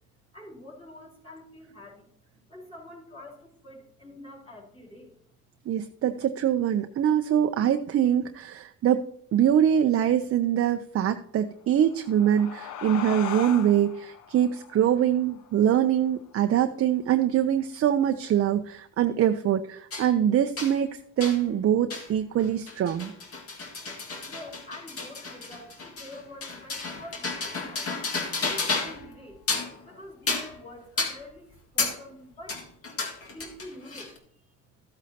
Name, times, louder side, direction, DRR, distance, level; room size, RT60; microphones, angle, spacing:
voice 1, 0.3-2.1 2.5-5.1 24.2-27.9 28.4-29.4 29.8-32.6 33.2-34.4, left 1 dB, 20° left, -7 dB, 3.8 m, -46 dB
voice 2, 5.7-23.1, right 10 dB, 50° right, 7 dB, 0.5 m, -24 dB
sound 1, 11.7-16.8, left 9 dB, 85° left, 0.7 m, -40 dB
sound 2, 19.9-20.1 20.6-20.7 21.2-21.4 21.9-22.1 22.4-29.1 29.3-29.8 30.3-30.6 31.0-31.2 31.8-32.0 32.5-34.2, left 3 dB, 50° left, 1.9 m, -32 dB
13.5 x 8.3 x 2.8 m, 0.62 s
cardioid pair, 90°, 30 cm